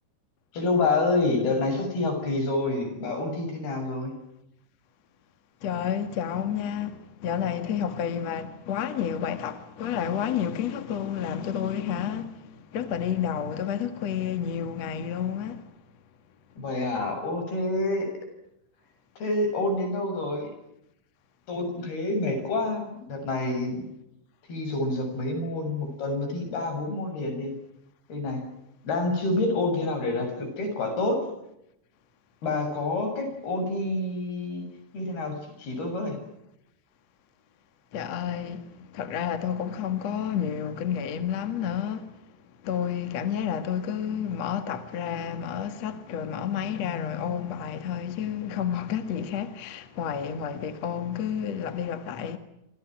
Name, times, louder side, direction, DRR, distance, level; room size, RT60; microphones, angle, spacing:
voice 1, 0.5-4.2 16.6-18.1 19.2-20.5 21.5-23.9 24.5-27.5 28.1-28.4 28.8-31.2 32.4-34.7 34.9-36.2, left 2 dB, 80° left, 9.3 m, -28 dB
voice 2, 5.6-15.7 37.9-42.1 42.6-52.4, left 8 dB, 50° left, 2.6 m, -30 dB
28.0 x 27.5 x 6.2 m
omnidirectional pair, 4.4 m